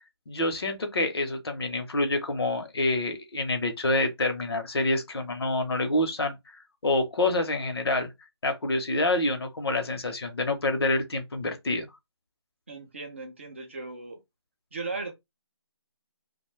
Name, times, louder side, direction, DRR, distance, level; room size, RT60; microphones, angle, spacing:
voice 1, 0.3-6.4 6.8-8.1 8.4-11.9, left 2 dB, 60° left, 0.8 m, -27 dB
voice 2, 12.7-14.2 14.7-15.1, right 3 dB, 25° right, 0.5 m, -37 dB
2.5 x 2.3 x 3.2 m
figure-of-eight pair, 170°, 15 cm